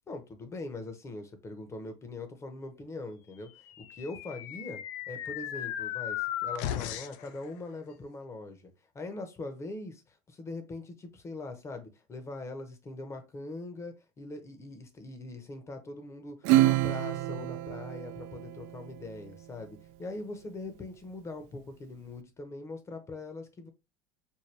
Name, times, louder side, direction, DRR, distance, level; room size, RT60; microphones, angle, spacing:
voice 1, 0.1-23.7, left 2 dB, 20° left, 0.8 m, -42 dB
sound 1, 3.7-7.3, left 11 dB, 65° left, 0.4 m, -36 dB
Acoustic guitar / Strum, 16.4-19.4, right 15 dB, 65° right, 0.4 m, -28 dB
4.5 x 2.2 x 3.2 m
supercardioid pair, 120°, 13 cm